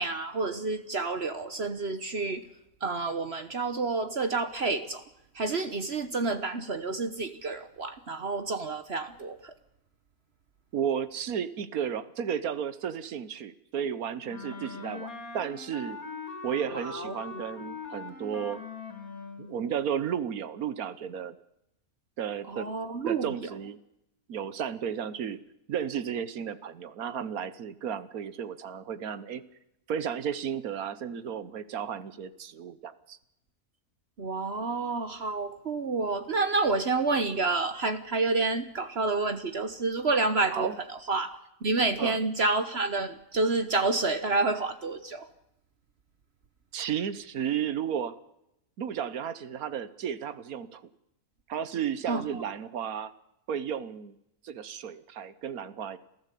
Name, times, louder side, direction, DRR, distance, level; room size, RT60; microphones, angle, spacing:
voice 1, 0.0-2.5 2.8-5.0 5.3-9.5 16.7-17.4 22.5-23.5 34.2-45.3 52.1-52.4, right 3 dB, 50° right, 10 dB, 1.3 m, -29 dB
voice 2, 10.7-16.0 16.4-18.6 19.4-21.4 22.2-22.7 23.1-23.8 24.3-25.4 25.7-29.4 29.9-33.2 40.5-40.7 42.0-42.2 46.7-48.2 48.8-50.8 51.5-53.1 53.5-54.2 54.4-56.0, right 8 dB, 85° right, 14 dB, 1.5 m, -33 dB
Wind instrument woodwind instrument, 14.3-19.5, left 5 dB, 80° left, 3.6 m, -41 dB
27.5 x 15.0 x 8.4 m, 0.83 s
omnidirectional pair, 1.5 m